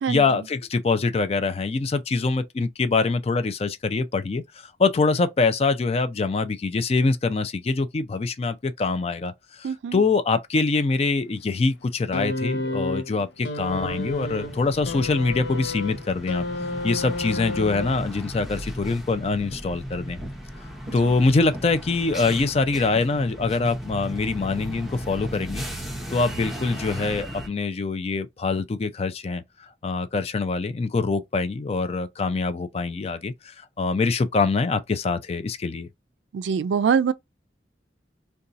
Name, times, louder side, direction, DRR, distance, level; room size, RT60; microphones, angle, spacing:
voice 1, 0.1-16.5 16.8-20.2 20.9-25.6 26.1-29.4 29.8-35.9, left 3 dB, 35° left, 0.4 m, -24 dB
voice 2, 9.6-10.0 20.9-21.2 36.3-37.1, right 6 dB, 80° right, 0.3 m, -24 dB
sound 1, 12.1-18.3 19.3-19.4, left 2 dB, 85° left, 0.6 m, -31 dB
sound 2, 13.7-27.5, equal, ahead, 0.7 m, -36 dB
2.6 x 2.3 x 3.8 m
head